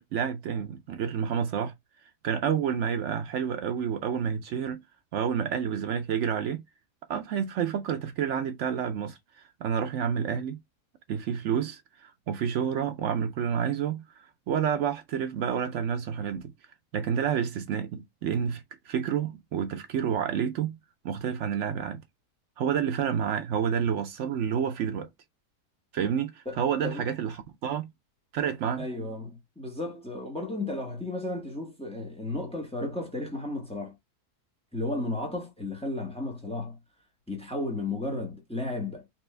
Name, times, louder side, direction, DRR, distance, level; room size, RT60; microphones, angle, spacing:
voice 1, 0.0-1.7 2.2-4.8 5.1-6.6 7.1-9.2 9.6-10.6 11.1-14.0 14.5-16.4 16.9-20.8 21.0-22.0 22.6-25.1 25.9-27.9 28.3-28.9, right 8 dB, 70° right, 0.7 m, -29 dB
voice 2, 28.8-33.9 34.7-36.8 37.3-39.0, left 2 dB, 5° left, 1.0 m, -33 dB
4.3 x 2.5 x 3.2 m
omnidirectional pair, 1.7 m